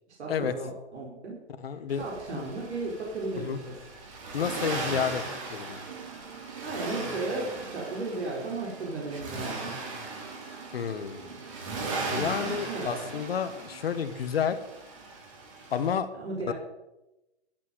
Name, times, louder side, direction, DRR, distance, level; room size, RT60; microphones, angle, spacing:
voice 1, 0.2-1.4 1.7-3.8 6.6-9.8 12.1-13.0 16.1-16.5, right 2 dB, 75° right, -3 dB, 4.8 m, -35 dB
voice 2, 1.6-2.4 3.4-3.6 4.3-5.2 5.5-5.8 10.7-11.3 12.1-14.6 15.7-16.1 16.4-16.5, left 7 dB, 60° left, 11 dB, 1.4 m, -30 dB
Accelerating revving vroom, 1.9-15.9, right 3 dB, 30° right, 2.9 m, -38 dB
sound 1, 5.8-12.2, right 8 dB, 45° right, 0.9 m, -48 dB
12.0 x 9.0 x 7.7 m, 0.97 s
hypercardioid pair, 170°, 34 cm